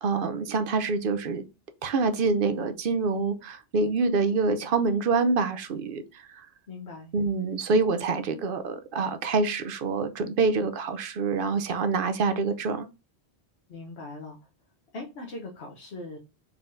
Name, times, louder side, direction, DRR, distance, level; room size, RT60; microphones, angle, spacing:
voice 1, 0.0-1.4 1.8-6.5 7.1-12.9, right 4 dB, 60° right, 0.8 m, -26 dB
voice 2, 6.7-7.1 13.7-14.4 14.9-16.2, left 2 dB, 85° left, 1.2 m, -40 dB
4.3 x 3.9 x 2.5 m
omnidirectional pair, 1.1 m